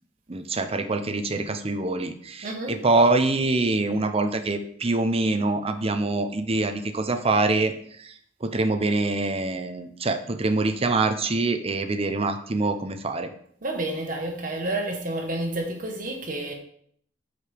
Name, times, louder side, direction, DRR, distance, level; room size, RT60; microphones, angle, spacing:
voice 1, 0.3-7.7 8.0-8.1 8.4-13.3, right 2 dB, 35° right, 0.6 m, -24 dB
voice 2, 2.4-2.7 13.6-16.5, right 2 dB, 50° right, 1.2 m, -30 dB
8.3 x 4.9 x 3.4 m
head